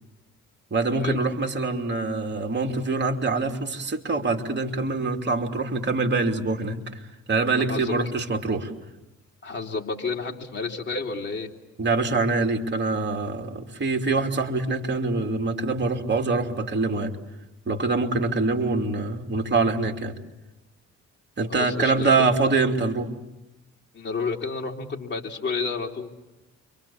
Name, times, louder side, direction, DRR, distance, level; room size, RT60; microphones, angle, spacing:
voice 1, 0.7-6.8 7.3-8.7 11.8-17.1 17.7-20.1 21.4-23.1, right 3 dB, 35° right, 4 dB, 2.8 m, -24 dB
voice 2, 7.6-8.0 9.4-11.5 21.5-22.3 23.9-26.1, left 4 dB, 35° left, 1 dB, 3.1 m, -30 dB
29.0 x 25.0 x 7.2 m, 0.96 s
cardioid pair, 90°, 30 cm